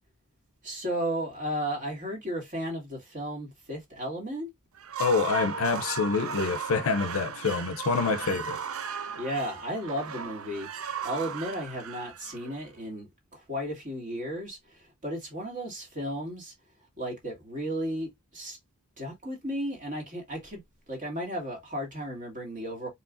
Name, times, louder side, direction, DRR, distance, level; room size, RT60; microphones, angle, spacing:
voice 1, 0.6-4.5 9.2-16.5 17.0-18.6 19.0-20.6 20.9-22.9, equal, 35° right, 2.0 m, -34 dB
sound 1, 4.8-12.9, right 6 dB, 65° right, 0.5 m, -36 dB
voice 2, 5.0-8.6, left 4 dB, 65° left, 0.6 m, -27 dB
4.7 x 3.2 x 2.5 m
head